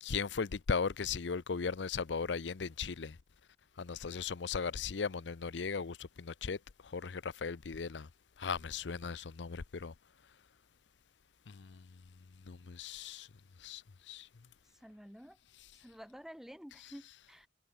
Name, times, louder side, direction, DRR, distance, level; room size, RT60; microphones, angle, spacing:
voice 1, 0.0-3.2 3.8-8.1 8.4-9.9 11.5-11.8 12.5-13.3 13.6-14.3, left 5 dB, 75° left, 0.6 m, -37 dB
voice 2, 4.0-4.3 14.7-15.4 15.7-17.5, equal, ahead, 1.0 m, -51 dB
head